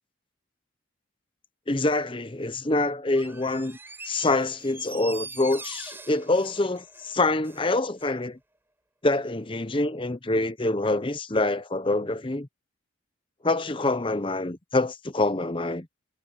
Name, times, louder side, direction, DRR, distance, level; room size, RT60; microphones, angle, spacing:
voice 1, 1.7-3.8 4.0-8.4 9.0-12.5 13.4-15.9, left 2 dB, 25° left, 0.8 m, -26 dB
Door, 3.1-7.7 8.0-8.1, right 3 dB, 10° right, 5.1 m, -43 dB
head